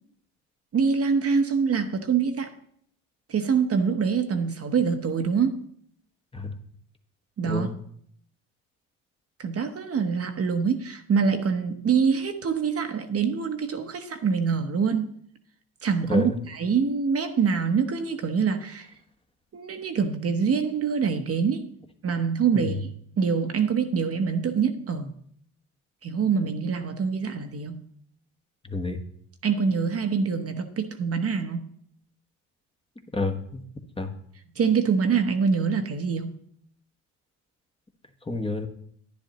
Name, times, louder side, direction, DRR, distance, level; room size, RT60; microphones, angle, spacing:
voice 1, 0.7-2.5 3.3-5.6 7.4-7.7 9.4-15.1 15.8-18.9 19.5-21.7 22.0-22.9 23.2-25.1 26.0-27.8 29.4-31.7 34.6-36.3, right 6 dB, 40° right, 1.0 m, -25 dB
voice 2, 16.1-16.4 22.5-22.7 28.7-29.0 33.1-33.6 34.0-34.1 38.3-38.7, left 3 dB, 15° left, 1.2 m, -29 dB
10.5 x 10.0 x 3.0 m
hypercardioid pair, 65°, 37 cm